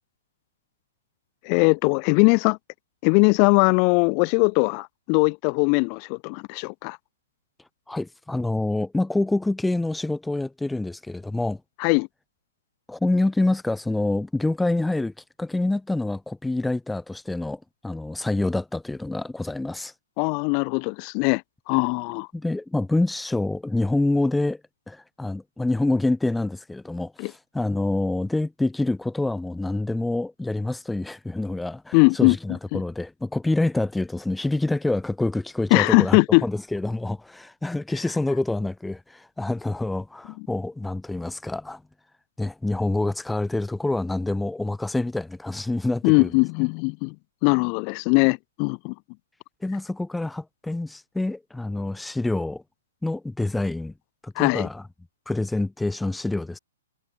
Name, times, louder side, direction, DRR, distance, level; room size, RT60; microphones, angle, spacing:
voice 1, 1.4-2.6 3.0-7.0 11.8-12.1 20.2-21.4 21.7-22.3 27.2-27.3 31.9-32.4 32.7-32.8 35.7-36.4 46.0-47.1 47.4-48.9 54.3-54.7, left 40 dB or more, 35° left, 6.5 m, -20 dB
voice 2, 7.9-11.6 12.9-19.9 22.3-24.6 24.9-41.8 42.4-46.3 49.6-52.6 53.0-53.9 54.2-54.8 55.3-56.6, left 2 dB, 5° left, 6.0 m, -26 dB
hypercardioid pair, 135°, 0 cm